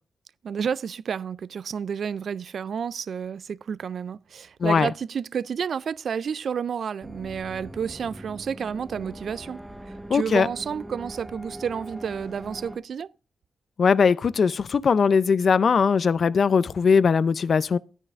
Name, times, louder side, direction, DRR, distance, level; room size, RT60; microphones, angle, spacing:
voice 1, 0.4-9.6 9.9-13.1, right 7 dB, 70° right, 0.3 m, -30 dB
voice 2, 4.6-4.9 10.1-10.5 13.8-17.8, left 5 dB, 60° left, 0.5 m, -20 dB
sound 1, 7.0-12.8, right 1 dB, 5° right, 1.0 m, -41 dB
12.0 x 9.9 x 2.5 m
cardioid pair, 70°, 0 cm